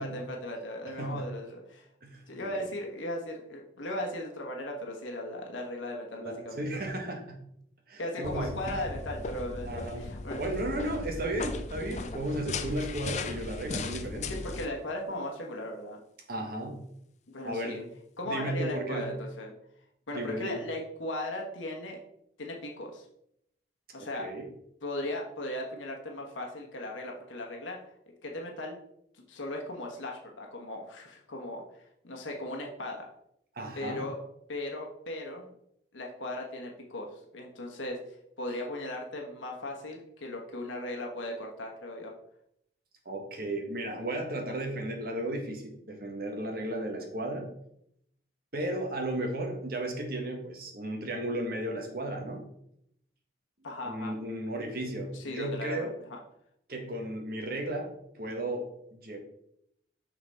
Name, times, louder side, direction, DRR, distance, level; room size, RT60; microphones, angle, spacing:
voice 1, 0.0-1.9 2.3-6.7 8.0-10.4 14.3-16.0 17.3-17.8 18.2-19.5 20.1-22.0 22.4-23.0 23.9-24.3 24.8-27.8 28.2-28.8 29.1-31.6 32.0-33.1 33.8-34.2 34.5-35.5 35.9-37.1 37.3-38.0 38.4-42.1 53.6-54.1 55.1-56.2, left 1 dB, 90° left, 1 dB, 1.2 m, -37 dB
voice 2, 2.0-2.7 6.2-7.4 7.9-8.6 9.7-10.1 10.4-14.4 16.3-16.8 17.4-17.8 18.2-19.1 20.1-20.6 24.0-24.5 33.5-34.0 43.0-47.5 48.5-52.4 53.8-55.9 56.7-59.2, right 1 dB, 50° right, 2 dB, 1.4 m, -34 dB
sound 1, 8.2-14.7, left 3 dB, 35° left, 0.5 m, -37 dB
5.9 x 5.8 x 4.2 m, 0.74 s
head